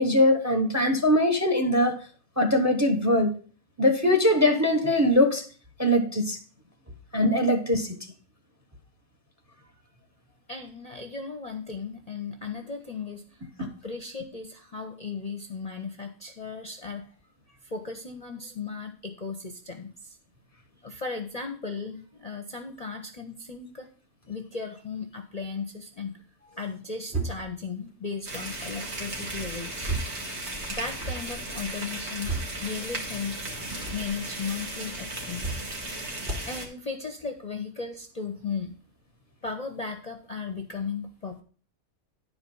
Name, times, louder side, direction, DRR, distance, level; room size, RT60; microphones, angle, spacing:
voice 1, 0.0-2.0 2.4-3.3 3.8-5.4 5.8-6.4 7.1-7.9, left 1 dB, 15° right, 0.8 m, -21 dB
voice 2, 10.5-13.2 13.6-17.1 17.6-19.9 20.8-23.9 24.3-30.0 30.7-32.3 32.6-33.5 33.9-35.7 36.5-38.8 39.4-41.4, left 5 dB, 35° left, 0.7 m, -36 dB
sound 1, 27.1-27.6 29.2-30.2 30.6-31.2 31.9-32.6 33.6-34.1 35.2-35.7 36.2-36.5, right 3 dB, 35° right, 2.8 m, -34 dB
sound 2, 28.3-36.7, right 2 dB, 55° right, 2.1 m, -36 dB
10.5 x 4.8 x 5.4 m
omnidirectional pair, 1.4 m